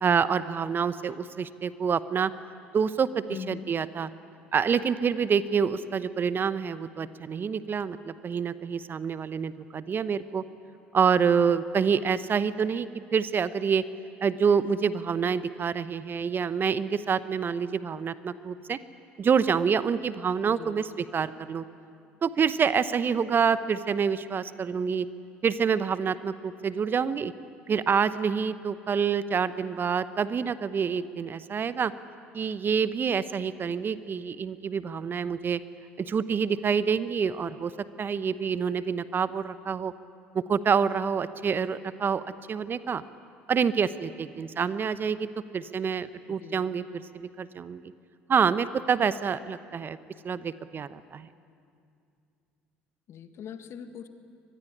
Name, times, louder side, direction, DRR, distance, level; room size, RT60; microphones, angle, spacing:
voice 1, 0.0-2.3 2.7-4.1 4.5-10.4 10.9-13.8 14.2-18.8 19.2-21.6 22.2-25.1 25.4-27.3 27.7-31.9 32.3-35.6 36.0-37.7 38.0-39.9 40.3-42.2 42.5-43.0 43.5-45.3 45.5-47.8 48.3-50.0 50.2-51.3, right 6 dB, 35° right, 15 dB, 0.9 m, -27 dB
voice 2, 3.3-3.6 20.5-20.8 46.3-46.7 53.1-54.1, left 8 dB, 50° left, 9 dB, 1.7 m, -41 dB
24.0 x 19.5 x 10.0 m, 2.4 s
hypercardioid pair, 60°, 6 cm